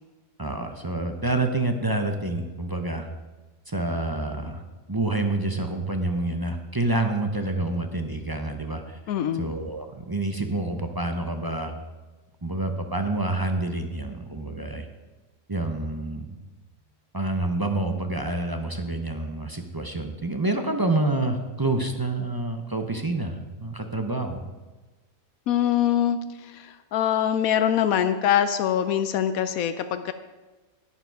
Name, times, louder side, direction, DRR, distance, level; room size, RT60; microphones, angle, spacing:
voice 1, 0.4-3.1 3.7-4.6 4.9-11.7 12.4-14.9 15.5-16.4 17.1-24.5, right 2 dB, 20° right, 5 dB, 0.6 m, -28 dB
voice 2, 9.1-9.5 25.5-30.1, left 10 dB, 85° left, 10 dB, 1.1 m, -24 dB
11.0 x 10.0 x 4.6 m, 1.2 s
omnidirectional pair, 1.4 m